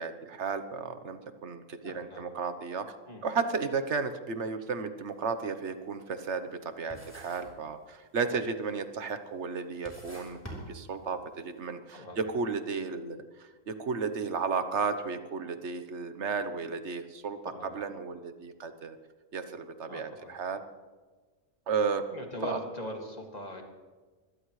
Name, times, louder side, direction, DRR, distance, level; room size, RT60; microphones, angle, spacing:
voice 1, 0.0-2.8 3.2-17.4 17.7-19.0 19.3-20.6 21.7-22.0 22.4-22.6, right 5 dB, 60° right, 9 dB, 1.3 m, -33 dB
voice 2, 1.8-2.3 3.1-3.3 8.2-8.4 11.9-12.2 17.5-17.9 19.9-20.3 22.1-23.6, left 1 dB, 30° left, 1 dB, 2.3 m, -41 dB
sound 1, 5.0-5.2 5.6-6.6 6.9-7.7 7.9-8.5 9.1-9.2 9.7-11.4, equal, 10° left, 3.9 m, -46 dB
24.0 x 17.5 x 3.2 m, 1.3 s
omnidirectional pair, 1.4 m